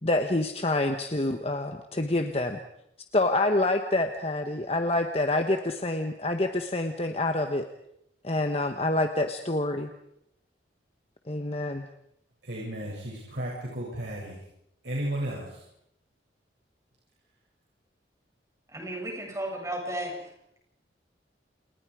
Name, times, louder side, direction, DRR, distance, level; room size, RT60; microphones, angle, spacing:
voice 1, 0.0-2.6 3.1-7.6 8.2-9.9 11.3-11.8, left 2 dB, 35° left, 5 dB, 1.4 m, -27 dB
voice 2, 12.4-14.4 14.8-15.7, right 1 dB, 80° right, -3 dB, 7.6 m, -34 dB
voice 3, 18.7-20.3, right 1 dB, 15° right, 0 dB, 7.8 m, -34 dB
29.5 x 29.5 x 5.1 m, 0.76 s
head